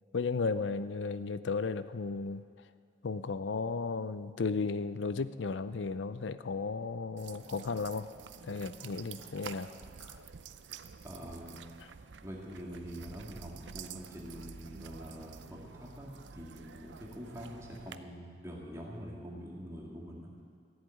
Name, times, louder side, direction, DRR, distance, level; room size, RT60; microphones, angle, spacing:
voice 1, 0.1-2.5 3.0-8.1 8.4-9.7 10.0-10.2, left 4 dB, 90° left, 14 dB, 0.5 m, -34 dB
sound 1, 7.2-18.0, right 6 dB, 80° right, 0.6 m, -49 dB
voice 2, 11.0-11.7 12.2-20.3, equal, 15° right, -3 dB, 2.1 m, -45 dB
14.5 x 7.9 x 9.3 m, 2.4 s
head